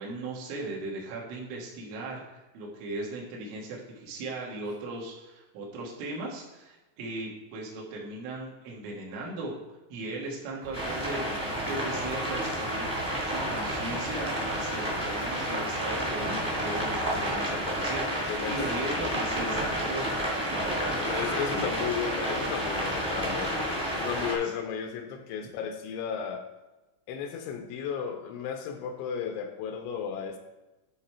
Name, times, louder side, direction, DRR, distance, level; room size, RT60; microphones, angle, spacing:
voice 1, 0.0-9.5 9.9-21.0 21.5-21.7 24.4-24.5, right 2 dB, 90° right, -3 dB, 4.1 m, -38 dB
Walk footsteps / Bell, 10.6-17.3, right 3 dB, 70° right, 3.0 m, -42 dB
sound 1, 10.7-24.3, equal, 10° right, 0.9 m, -30 dB
voice 2, 18.3-18.6 21.0-23.6 23.9-26.4 27.1-30.4, left 7 dB, 80° left, 5 dB, 2.9 m, -34 dB
12.0 x 4.7 x 4.3 m, 1.1 s
omnidirectional pair, 5.5 m